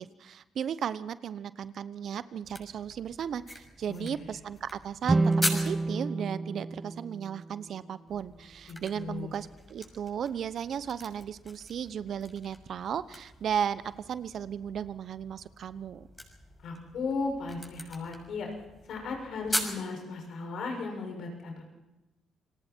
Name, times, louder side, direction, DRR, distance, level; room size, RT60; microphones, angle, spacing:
voice 1, 0.0-16.1, right 8 dB, 65° right, 15 dB, 1.0 m, -35 dB
sound 1, 2.4-6.0 8.1-19.8, left 1 dB, 10° left, 6.3 m, -41 dB
voice 2, 3.9-4.2 8.7-9.3 16.6-18.5 18.9-21.7, left 4 dB, 70° left, 2 dB, 6.9 m, -36 dB
sound 2, 5.0-8.3, right 3 dB, 25° right, 1.0 m, -30 dB
29.5 x 19.5 x 4.6 m, 1.1 s
supercardioid pair, 55°, 0 cm